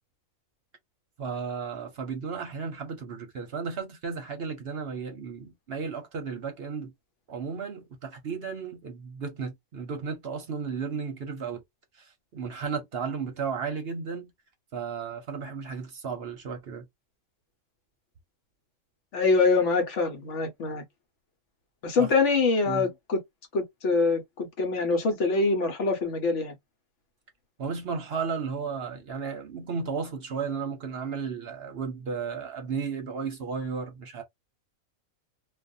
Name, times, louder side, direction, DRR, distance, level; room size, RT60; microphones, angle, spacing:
voice 1, 1.2-6.9 7.3-11.6 11.9-14.3 14.7-16.9 22.0-22.2 22.7-22.9 27.6-34.2, right 5 dB, 55° right, 0.8 m, -34 dB
voice 2, 19.1-20.8 21.8-23.2 23.5-26.5, left 4 dB, 65° left, 1.1 m, -24 dB
2.5 x 2.3 x 2.6 m
omnidirectional pair, 1.4 m